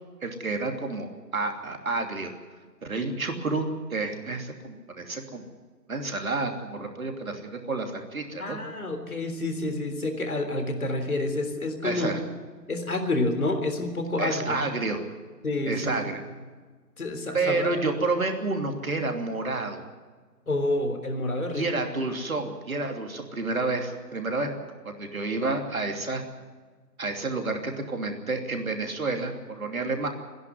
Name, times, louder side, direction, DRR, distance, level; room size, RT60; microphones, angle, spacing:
voice 1, 0.2-2.3 2.8-5.5 5.9-8.6 11.8-12.2 14.2-15.0 15.7-16.2 17.3-19.8 21.5-24.5 24.8-26.2 27.0-30.1, right 3 dB, 55° right, 3 dB, 3.1 m, -29 dB
voice 2, 8.4-12.2 12.7-14.6 15.4-15.9 17.0-17.7 20.5-21.6, left 2 dB, 60° left, 5 dB, 3.7 m, -28 dB
25.5 x 11.0 x 9.7 m, 1.5 s
figure-of-eight pair, 155°, 49 cm